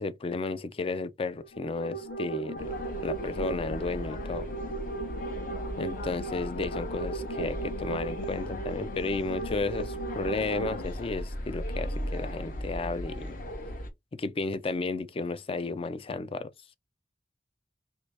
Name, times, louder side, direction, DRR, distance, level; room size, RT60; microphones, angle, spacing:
voice 1, 0.0-2.7 3.0-4.5 5.8-13.4 14.1-16.5, left 3 dB, 30° left, 0.4 m, -33 dB
sound 1, 1.4-10.8, right 3 dB, 85° left, 0.8 m, -37 dB
sound 2, 2.6-13.9, left 1 dB, 50° left, 0.8 m, -37 dB
3.0 x 2.7 x 3.3 m
head